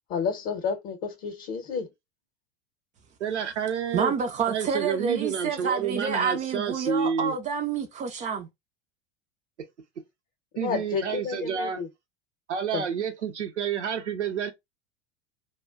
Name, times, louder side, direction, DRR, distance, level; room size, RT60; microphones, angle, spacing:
voice 1, 0.1-1.9 10.5-11.9 12.7-12.8, left 6 dB, 40° left, 0.7 m, -30 dB
voice 2, 3.2-4.1 4.5-7.4 10.6-11.8 12.5-14.5, right 7 dB, 85° right, 0.7 m, -29 dB
voice 3, 3.9-8.5, right 6 dB, 25° right, 0.4 m, -28 dB
2.2 x 2.1 x 3.4 m
figure-of-eight pair, 80°, 34 cm